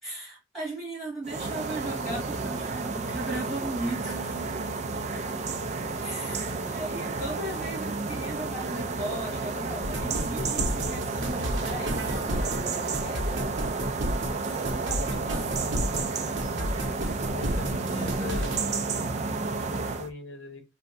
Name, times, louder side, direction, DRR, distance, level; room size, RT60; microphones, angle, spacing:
voice 1, 0.0-4.5 5.1-5.2 6.0-13.7 14.8-15.7, right 1 dB, ahead, 1.7 m, -37 dB
sound 1, 1.2-20.1, right 3 dB, 35° right, 0.3 m, -31 dB
sound 2, 9.8-18.6, equal, 70° right, 0.7 m, -32 dB
voice 2, 17.3-18.7 19.5-20.6, left 3 dB, 70° left, 0.9 m, -41 dB
3.4 x 2.1 x 2.5 m
head